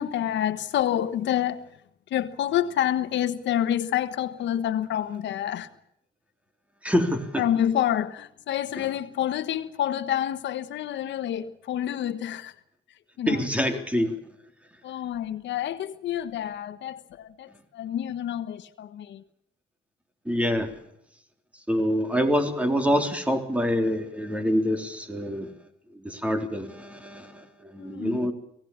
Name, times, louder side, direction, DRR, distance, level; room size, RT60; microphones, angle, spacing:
voice 1, 0.0-1.6 2.1-5.7 7.4-12.6 13.2-13.4 13.7-13.8 14.8-19.2 27.8-28.3, left 11 dB, 80° left, 1.3 m, -28 dB
voice 2, 6.8-7.4 8.8-8.9 13.3-14.2 20.3-20.7 21.7-25.5 26.0-28.3, equal, 5° right, 3.7 m, -26 dB
25.0 x 18.0 x 7.2 m
cardioid pair, 115°, 19 cm